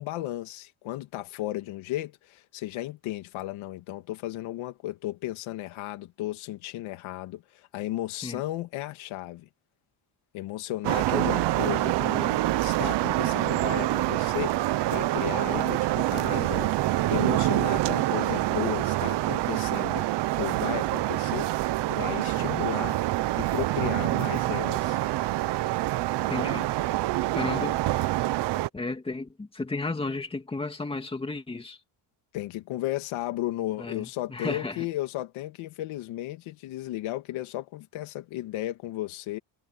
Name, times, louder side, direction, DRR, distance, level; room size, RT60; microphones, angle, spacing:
voice 1, 0.0-9.5 10.3-20.1 20.4-23.0 23.4-25.0 27.4-27.7 32.3-39.4, left 15 dB, 80° left, 2.3 m, -34 dB
sound 1, 10.8-28.7, right 16 dB, 60° right, 0.9 m, -26 dB
voice 2, 26.3-26.7 27.4-27.8 28.7-31.8 33.8-34.9, left 3 dB, 10° left, 2.4 m, -33 dB
cardioid pair, 170°, 48 cm